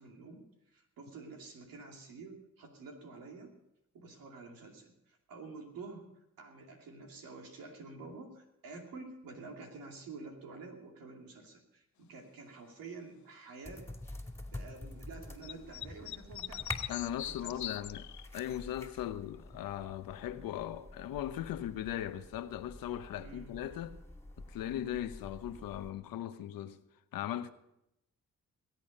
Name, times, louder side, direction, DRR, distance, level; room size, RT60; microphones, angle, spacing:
voice 1, 0.0-3.5 3.9-6.1 6.4-13.9 14.5-16.7 17.3-17.9 23.1-23.6, right 3 dB, 85° right, 2.7 m, -49 dB
sound 1, 13.6-25.9, left 2 dB, 10° left, 2.4 m, -48 dB
sound 2, 15.4-18.6, left 12 dB, 60° left, 0.6 m, -41 dB
voice 2, 16.9-18.1 18.3-24.0 24.5-26.8 27.1-27.5, left 11 dB, 85° left, 0.8 m, -38 dB
22.0 x 8.5 x 5.3 m
supercardioid pair, 50°, 33 cm